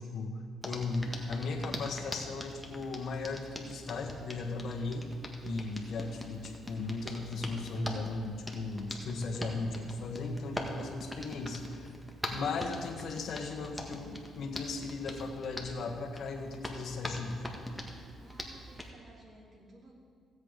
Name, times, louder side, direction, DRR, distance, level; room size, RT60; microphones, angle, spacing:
voice 1, 0.0-5.1 5.4-11.9 12.3-17.4, left 3 dB, 65° left, 2 dB, 1.5 m, -37 dB
Hands, 0.6-18.9, left 1 dB, ahead, 1.6 m, -43 dB
voice 2, 1.1-2.0 18.2-19.9, right 1 dB, 45° right, -2 dB, 3.3 m, -54 dB
15.5 x 8.3 x 5.2 m, 2.2 s
cardioid pair, 90°, 0 cm